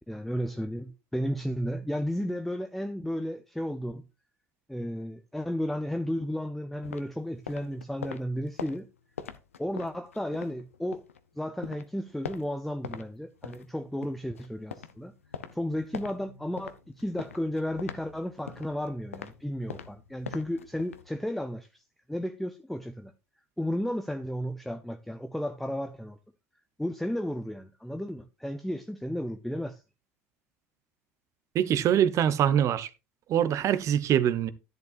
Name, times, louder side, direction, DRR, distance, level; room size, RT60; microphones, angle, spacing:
voice 1, 0.1-4.0 4.7-8.9 9.6-11.0 11.4-15.1 15.5-21.8 22.1-23.1 23.6-26.2 26.8-29.8, equal, ahead, 0.7 m, -33 dB
sound 1, 6.8-11.2 11.6-13.1 13.4-21.1, left 6 dB, 90° left, 0.7 m, -43 dB
voice 2, 31.5-32.9 33.3-34.5, right 10 dB, 45° right, 0.9 m, -24 dB
10.5 x 10.5 x 2.6 m
hypercardioid pair, 70°, 7 cm